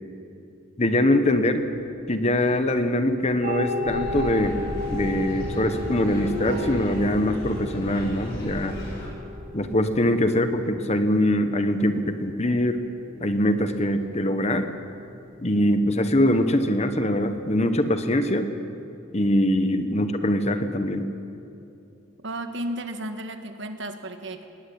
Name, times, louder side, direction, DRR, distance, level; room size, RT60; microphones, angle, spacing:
voice 1, 0.8-1.6 2.1-4.6 4.9-8.8 9.5-12.8 13.2-14.7 15.4-18.5 19.1-21.1, left 1 dB, 30° left, 8 dB, 1.2 m, -23 dB
sound 1, 1.9-8.0, equal, 80° right, 2.3 m, -38 dB
sound 2, 3.4-18.2, left 1 dB, 45° right, 1.8 m, -37 dB
sound 3, 3.9-9.1, equal, 55° left, 7.5 m, -35 dB
voice 2, 22.2-24.5, right 1 dB, 60° right, 7 dB, 1.6 m, -33 dB
20.0 x 18.0 x 8.7 m, 2.7 s
head